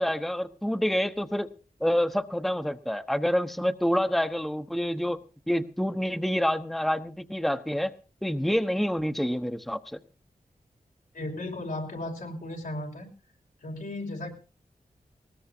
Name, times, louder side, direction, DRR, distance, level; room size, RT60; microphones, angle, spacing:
voice 1, 0.0-1.5 1.8-5.2 5.5-7.9 8.2-10.0, equal, ahead, 7 dB, 1.0 m, -27 dB
voice 2, 11.1-13.1 13.6-14.3, left 1 dB, 90° left, 0 dB, 5.0 m, -35 dB
20.5 x 19.0 x 2.8 m, 0.35 s
cardioid pair, 60°, 14 cm